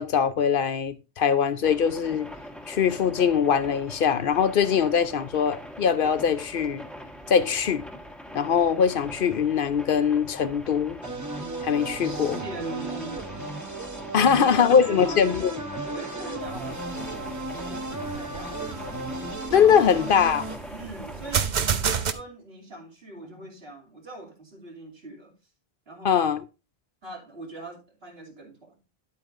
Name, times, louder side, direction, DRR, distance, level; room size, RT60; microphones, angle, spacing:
voice 1, 0.0-2.3 2.7-6.8 7.3-7.9 8.3-11.0 11.6-12.4 14.1-15.5 19.5-20.4 26.0-26.4, left 7 dB, 60° left, 0.8 m, -22 dB
sound 1, 1.6-21.5, equal, ahead, 1.4 m, -42 dB
sound 2, 11.0-20.6, right 2 dB, 20° right, 0.8 m, -35 dB
voice 2, 12.0-13.6 14.2-15.3 15.8-16.9 17.5-19.3 19.9-20.1 20.7-25.3 25.9-26.3 27.0-28.9, right 2 dB, 75° right, 2.9 m, -42 dB
sound 3, 16.4-22.1, right 7 dB, 50° right, 0.8 m, -31 dB
9.9 x 8.4 x 2.5 m
omnidirectional pair, 1.1 m